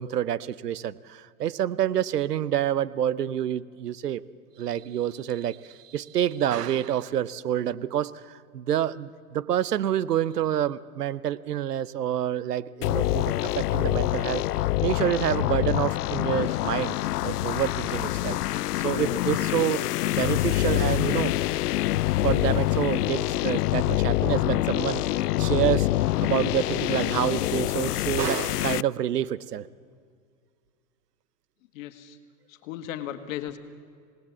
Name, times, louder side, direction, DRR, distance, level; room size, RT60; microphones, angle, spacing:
voice 1, 0.0-4.2 4.6-17.0 17.2-19.8 20.2-21.3 22.2-25.9 26.2-29.7, right 10 dB, 90° right, 18 dB, 0.9 m, -28 dB
sound 1, 12.8-28.8, left 16 dB, 80° left, 0.5 m, -26 dB
voice 2, 31.7-32.2 32.5-33.6, left 11 dB, 60° left, 9 dB, 2.1 m, -36 dB
26.5 x 19.5 x 7.3 m, 2.1 s
hypercardioid pair, 110°, 46 cm